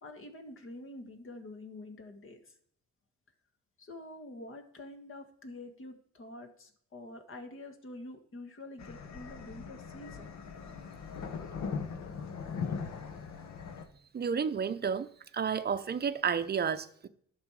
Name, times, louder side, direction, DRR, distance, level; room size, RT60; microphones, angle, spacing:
voice 1, 0.0-2.5 3.8-10.3, left 2 dB, 45° left, 1.6 m, -47 dB
sound 1, 8.8-13.9, left 5 dB, 65° left, 1.1 m, -40 dB
voice 2, 14.1-15.1 15.3-17.1, right 6 dB, 35° right, 0.7 m, -31 dB
11.0 x 6.2 x 4.8 m
cardioid pair, 90°, 30 cm